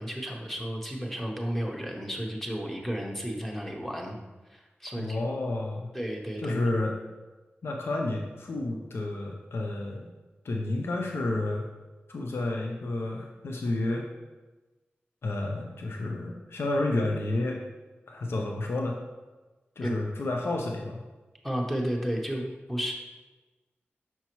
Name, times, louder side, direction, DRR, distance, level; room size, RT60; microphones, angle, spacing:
voice 1, 0.0-4.2 4.5-5.2 5.9-6.6 19.8-19.9 21.4-22.9, equal, 5° left, 0 dB, 0.8 m, -32 dB
voice 2, 5.0-5.9 6.4-6.9 7.6-10.1 10.4-11.7 12.1-14.1 15.2-17.6 18.1-19.0 19.8-21.0, left 2 dB, 70° left, 0 dB, 0.6 m, -30 dB
5.8 x 5.5 x 3.0 m, 1.2 s
wide cardioid pair, 115°, 4 cm